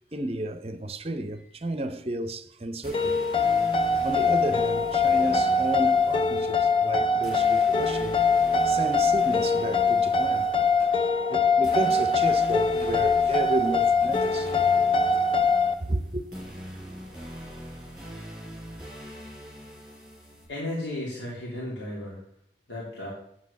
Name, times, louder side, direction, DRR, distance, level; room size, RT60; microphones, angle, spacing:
voice 1, 0.1-3.2 4.0-8.2 8.6-11.0 11.3-14.6 15.1-15.2 15.8-16.2, right 1 dB, 35° right, 0.7 m, -32 dB
sound 1, 2.8-20.4, equal, 5° right, 4.7 m, -42 dB
sound 2, 2.9-15.7, left 4 dB, 30° left, 0.6 m, -23 dB
voice 2, 20.5-22.2 22.7-23.1, left 1 dB, 90° left, 2.9 m, -34 dB
8.6 x 7.6 x 7.0 m
head